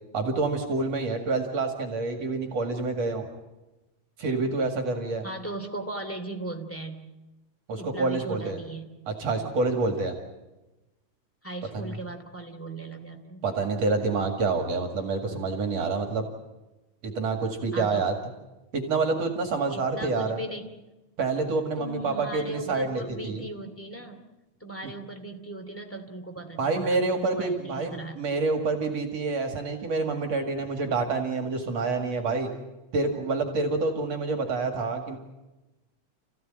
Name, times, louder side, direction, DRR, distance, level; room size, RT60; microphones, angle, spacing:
voice 1, 0.1-3.2 4.2-5.2 7.7-8.6 9.1-10.1 11.7-11.9 13.4-16.2 17.0-18.1 18.7-20.4 21.2-23.4 24.8-24.9 26.6-32.5 32.9-35.2, right 3 dB, 60° right, 4 dB, 3.2 m, -27 dB
voice 2, 5.2-7.1 7.8-9.0 11.4-13.5 17.7-18.1 19.7-20.7 21.8-24.2 24.6-28.2, right 1 dB, 5° left, 4 dB, 2.2 m, -38 dB
30.0 x 16.0 x 9.0 m, 1.1 s
omnidirectional pair, 3.3 m